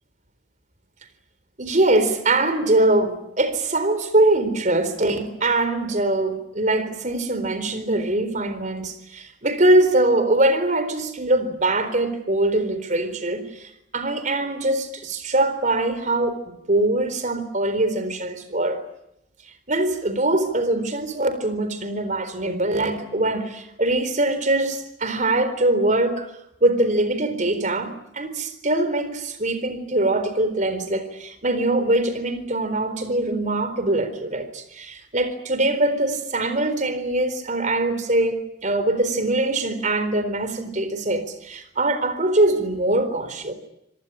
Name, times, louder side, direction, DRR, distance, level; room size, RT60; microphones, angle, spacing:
voice 1, 1.6-16.4 16.7-18.8 19.7-26.3 26.6-43.5, right 2 dB, 40° right, 12 dB, 4.1 m, -22 dB
27.0 x 18.5 x 9.9 m, 0.85 s
head